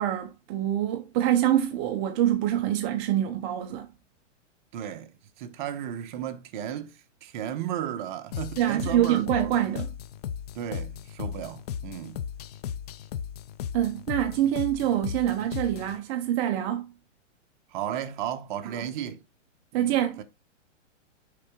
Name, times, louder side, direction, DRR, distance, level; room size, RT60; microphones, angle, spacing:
voice 1, 0.0-3.9 8.6-9.9 13.7-16.9 18.6-18.9 19.7-20.2, right 11 dB, 20° right, 0.5 m, -25 dB
voice 2, 4.7-5.1 5.4-9.6 10.5-12.2 17.7-19.2 19.7-20.2, right 10 dB, 40° right, 1.0 m, -34 dB
sound 1, 8.3-16.0, left 8 dB, 35° left, 0.5 m, -36 dB
6.5 x 5.5 x 3.6 m
hypercardioid pair, 155°, 38 cm